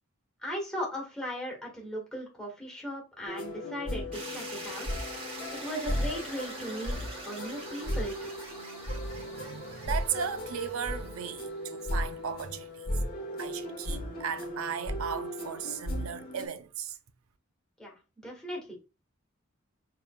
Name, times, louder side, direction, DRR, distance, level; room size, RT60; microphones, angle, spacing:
voice 1, 0.4-5.0 5.5-8.3 17.8-18.8, equal, 5° left, 1.5 m, -38 dB
sound 1, 3.2-16.5, equal, 45° left, 1.3 m, -36 dB
sound 2, 4.1-12.1, right 2 dB, 25° right, 1.2 m, -44 dB
voice 2, 9.1-12.7 13.4-17.0, right 7 dB, 80° right, 0.5 m, -36 dB
4.7 x 3.3 x 2.3 m
head